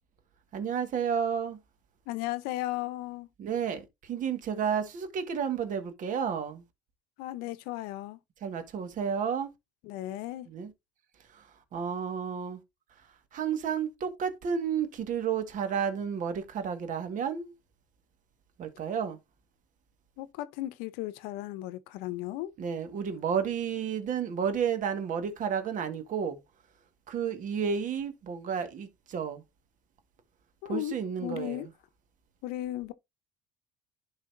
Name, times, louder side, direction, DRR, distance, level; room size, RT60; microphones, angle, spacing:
voice 1, 0.5-1.6 3.4-6.6 8.4-9.5 10.5-10.7 11.3-11.5 11.7-12.6 13.3-17.5 18.6-19.2 22.6-26.4 27.1-29.4 30.7-31.7, right 7 dB, 55° right, 1.7 m, -31 dB
voice 2, 2.1-3.3 7.2-8.2 9.8-10.5 20.2-22.5 30.6-31.7 32.4-32.9, left 15 dB, 75° left, 0.7 m, -35 dB
11.0 x 4.0 x 2.6 m
hypercardioid pair, 75°, 16 cm